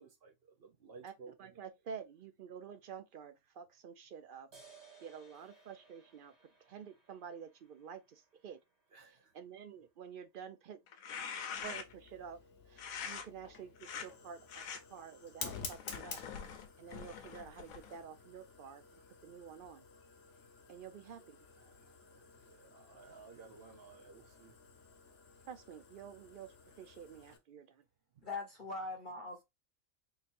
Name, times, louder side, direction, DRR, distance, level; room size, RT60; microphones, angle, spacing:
voice 1, 0.0-1.6 8.9-9.3 21.6-24.5 28.2-28.3, right 4 dB, 50° right, 0.9 m, -57 dB
voice 2, 1.0-4.5 5.0-6.3 6.7-8.6 9.0-10.8 11.6-12.4 12.7-14.6 14.9-16.2 16.8-19.8 20.7-21.4 25.5-27.8, right 7 dB, 70° right, 0.5 m, -50 dB
sound 1, 4.5-11.5, right 4 dB, 30° right, 1.7 m, -64 dB
sound 2, 10.9-12.1 12.8-13.3 13.8-14.1 14.5-14.8 15.4-18.0, left 7 dB, 90° left, 1.1 m, -44 dB
Fire, 11.7-27.4, left 5 dB, 60° left, 1.2 m, -52 dB
voice 3, 28.2-29.4, left 3 dB, 40° left, 0.9 m, -41 dB
3.8 x 2.7 x 2.5 m
omnidirectional pair, 1.4 m